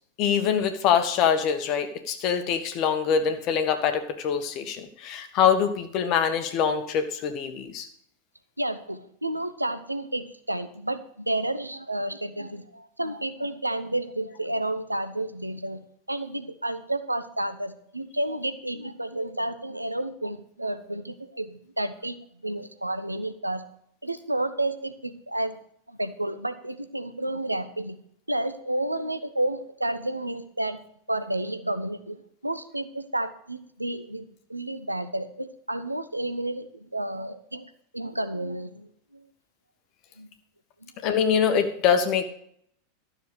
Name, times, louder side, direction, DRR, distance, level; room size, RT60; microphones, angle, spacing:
voice 1, 0.2-7.9 41.0-42.2, left 7 dB, 40° left, 7 dB, 1.8 m, -24 dB
voice 2, 8.6-22.2 22.4-23.6 24.0-25.6 25.9-28.0 28.3-37.7 37.9-39.2 40.2-40.3 40.8-40.9, right 1 dB, 85° right, 10 dB, 0.9 m, -31 dB
13.0 x 6.9 x 6.6 m, 0.66 s
figure-of-eight pair, 85°, 0 cm